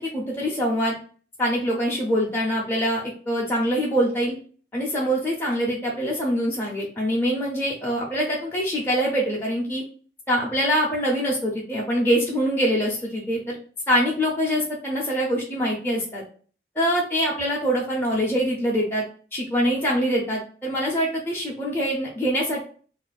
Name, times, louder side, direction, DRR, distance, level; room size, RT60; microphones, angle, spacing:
voice 1, 0.1-1.0 1.4-4.4 4.7-9.8 10.3-13.6 13.9-16.2 16.8-19.0 19.3-22.7, equal, 10° left, -4 dB, 0.5 m, -24 dB
2.4 x 2.2 x 4.0 m, 0.43 s
head